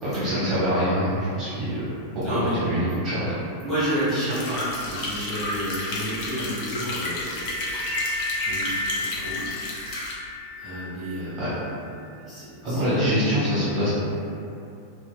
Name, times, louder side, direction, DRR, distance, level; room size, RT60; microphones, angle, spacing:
voice 1, 0.0-1.8 2.1-3.3 11.4-11.5 12.6-13.9, equal, 30° right, -12 dB, 0.9 m, -24 dB
voice 2, 2.2-2.6 3.6-7.5 8.3-9.4 10.6-11.6 12.3-12.9, equal, 15° left, -13 dB, 1.3 m, -30 dB
sound 1, 4.3-10.1, left 2 dB, 45° left, 0.5 m, -31 dB
Wind instrument woodwind instrument, 4.9-12.4, left 2 dB, 60° right, 0.3 m, -36 dB
2.7 x 2.0 x 2.2 m, 2.6 s
figure-of-eight pair, 90°, 0 cm